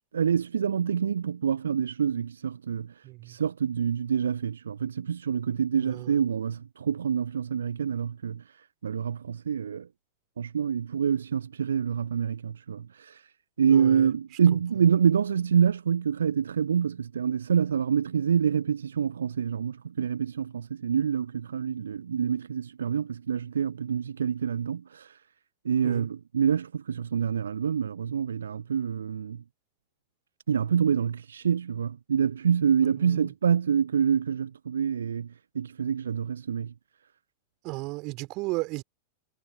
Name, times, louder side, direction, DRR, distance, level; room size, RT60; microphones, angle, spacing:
voice 1, 0.1-9.9 10.4-13.3 13.6-25.2 25.6-29.4 30.5-36.7, right 7 dB, 70° right, 1.3 m, -27 dB
voice 2, 3.0-3.4 5.8-6.2 13.7-14.1 25.8-26.1 32.8-33.3 37.6-38.8, right 24 dB, 40° right, 3.8 m, -35 dB
figure-of-eight pair, 90°, 0 cm